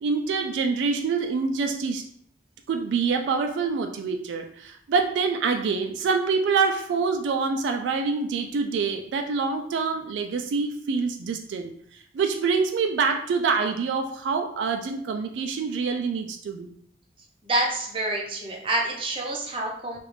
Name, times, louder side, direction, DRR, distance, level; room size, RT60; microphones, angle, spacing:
voice 1, 0.0-2.0 2.7-16.7, right 5 dB, 80° right, 5 dB, 0.3 m, -26 dB
voice 2, 17.4-20.0, right 2 dB, 30° right, -1 dB, 0.6 m, -27 dB
3.1 x 2.4 x 3.1 m, 0.64 s
head